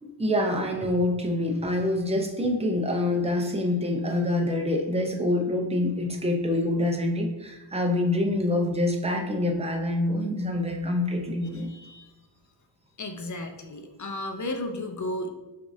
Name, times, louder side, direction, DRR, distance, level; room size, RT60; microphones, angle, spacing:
voice 1, 0.0-11.7, left 1 dB, 15° right, 2 dB, 0.5 m, -26 dB
voice 2, 11.5-12.1 13.0-15.3, left 1 dB, 40° left, 5 dB, 0.5 m, -34 dB
6.1 x 2.5 x 2.6 m, 1.1 s
wide cardioid pair, 100°, 48 cm